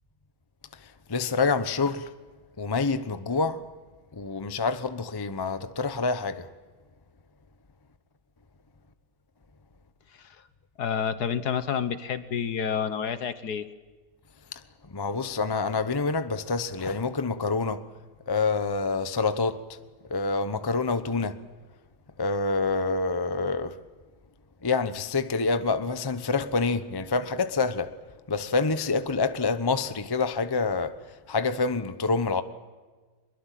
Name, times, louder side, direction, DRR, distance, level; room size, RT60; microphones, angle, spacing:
voice 1, 0.8-2.1 2.6-3.6 4.1-6.5 14.9-17.8 18.3-19.6 20.1-21.4 22.2-23.8 24.6-27.9 28.3-31.0 31.3-32.4, left 4 dB, 35° left, 0.3 m, -27 dB
voice 2, 10.8-13.6, left 7 dB, 55° left, 1.4 m, -29 dB
23.5 x 22.0 x 7.6 m
omnidirectional pair, 2.3 m